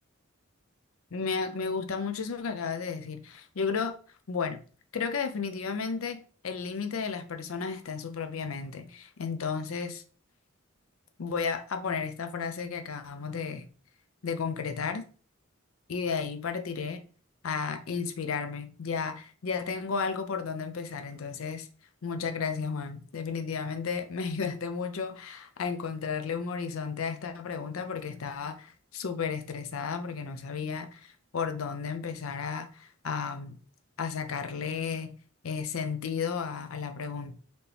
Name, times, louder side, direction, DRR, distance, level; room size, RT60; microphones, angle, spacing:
voice 1, 1.1-3.9 4.3-4.6 4.9-10.0 11.2-13.6 14.2-15.0 15.9-17.0 17.4-21.7 22.0-33.6 34.0-35.1 35.4-37.3, left 5 dB, 80° left, 0.5 m, -33 dB
4.2 x 2.8 x 3.3 m
head